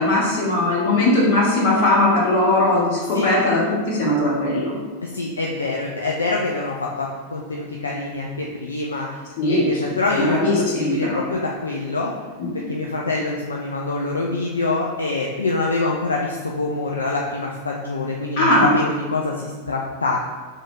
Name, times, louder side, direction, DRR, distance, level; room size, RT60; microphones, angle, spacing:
voice 1, 0.0-4.7 9.4-11.2 12.4-12.7 18.4-18.7, left 1 dB, 50° left, -4 dB, 1.3 m, -19 dB
voice 2, 5.0-9.1 9.5-10.4 10.8-12.1 12.5-20.2, left 3 dB, 75° left, -1 dB, 0.4 m, -25 dB
3.6 x 3.4 x 3.8 m, 1.4 s
figure-of-eight pair, 90°, 0 cm